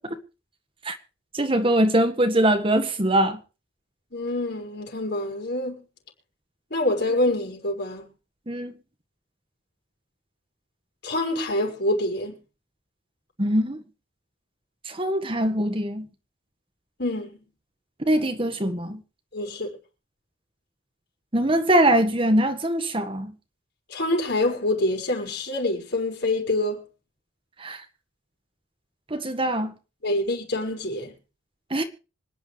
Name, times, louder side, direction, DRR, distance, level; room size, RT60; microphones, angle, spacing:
voice 1, 1.3-3.4 8.5-8.7 13.4-13.8 14.9-16.1 18.1-19.0 21.3-23.3 27.6-27.8 29.1-29.7 31.7-31.8, right 1 dB, 25° right, 1.6 m, -22 dB
voice 2, 4.1-5.8 6.7-8.0 11.0-12.4 17.0-17.3 19.3-19.8 23.9-26.8 30.0-31.1, left 1 dB, 55° left, 5.4 m, -26 dB
26.0 x 10.5 x 3.4 m
head